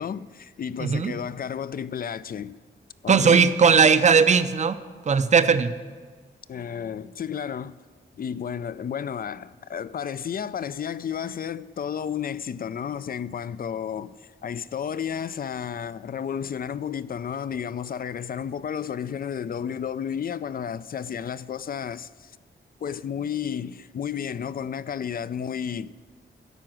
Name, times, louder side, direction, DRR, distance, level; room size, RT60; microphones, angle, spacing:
voice 1, 0.0-2.6 3.0-3.5 6.5-7.8 8.2-22.3 22.8-25.9, left 8 dB, 50° left, 0.4 m, -32 dB
voice 2, 0.8-1.1 3.1-4.8 5.1-5.7, right 6 dB, 35° right, 0.5 m, -18 dB
13.0 x 4.9 x 7.7 m
cardioid pair, 70°, 20 cm